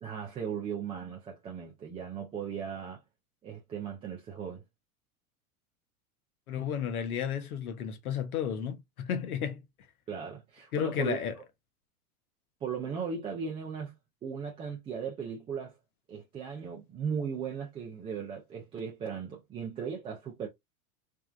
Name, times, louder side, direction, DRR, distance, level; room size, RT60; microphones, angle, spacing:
voice 1, 0.0-3.0 3.4-4.6 10.1-11.2 12.6-13.9 14.2-15.8 16.1-20.5, right 6 dB, 15° right, 0.4 m, -37 dB
voice 2, 6.5-9.6 10.7-11.3, left 8 dB, 80° left, 0.9 m, -32 dB
3.4 x 2.3 x 2.2 m
hypercardioid pair, 105°, 43 cm